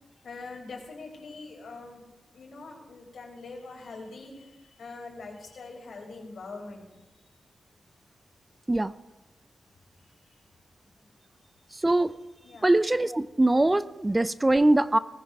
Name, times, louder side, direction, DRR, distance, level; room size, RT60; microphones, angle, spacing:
voice 1, 0.2-2.0 2.3-6.9 10.0-10.4 11.0-11.1 12.4-12.7, left 3 dB, 75° left, 0 dB, 4.3 m, -43 dB
voice 2, 12.6-15.0, right 2 dB, 20° right, 15 dB, 0.5 m, -22 dB
19.5 x 15.0 x 3.5 m, 1.1 s
cardioid pair, 80°, 0 cm